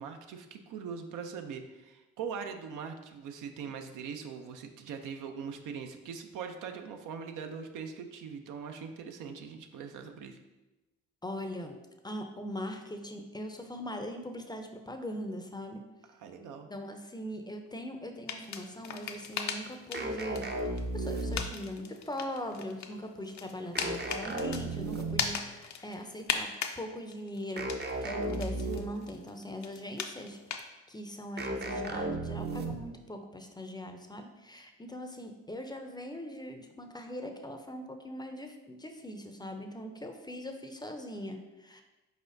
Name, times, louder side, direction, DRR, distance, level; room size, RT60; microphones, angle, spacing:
voice 1, 0.0-10.4 16.1-16.7, right 6 dB, 70° right, 6 dB, 0.5 m, -41 dB
voice 2, 11.2-11.8 12.0-15.8 16.5-20.5 20.9-41.8, left 1 dB, 15° left, 5 dB, 0.5 m, -41 dB
sound 1, 18.3-26.8 27.1-30.6, left 7 dB, 60° left, 0.5 m, -39 dB
sound 2, 19.9-21.7 23.8-25.4 27.6-29.1 31.4-33.0, right 2 dB, 30° right, 0.6 m, -35 dB
4.5 x 4.1 x 2.6 m, 1.1 s
supercardioid pair, 55°, 32 cm